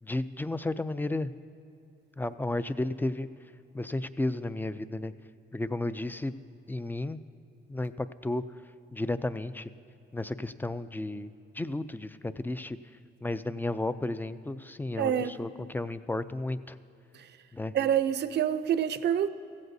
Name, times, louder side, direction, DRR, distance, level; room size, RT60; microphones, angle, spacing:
voice 1, 0.0-1.3 2.2-3.3 3.7-5.1 5.5-6.3 6.7-7.2 7.7-8.4 8.9-9.7 10.1-12.8 13.2-16.8 17.5-17.7, left 2 dB, 10° left, 0.3 m, -33 dB
voice 2, 15.0-15.3 17.7-19.3, right 9 dB, 60° right, 0.5 m, -26 dB
16.0 x 14.5 x 2.7 m
cardioid pair, 90°, 20 cm